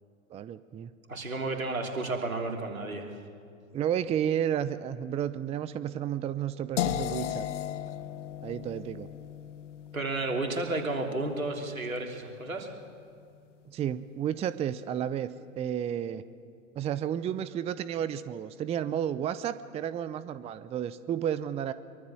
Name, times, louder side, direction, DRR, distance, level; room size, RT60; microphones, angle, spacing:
voice 1, 0.3-0.9 3.7-7.5 8.4-9.1 13.7-15.3 15.6-16.2 16.8-21.7, right 9 dB, 15° right, 15 dB, 0.6 m, -32 dB
voice 2, 1.1-3.2 9.9-12.7, right 2 dB, 85° right, 2 dB, 3.2 m, -32 dB
sound 1, 6.8-12.7, left 11 dB, 60° left, 0.9 m, -37 dB
23.5 x 23.0 x 7.0 m, 2.3 s
figure-of-eight pair, 95°, 40 cm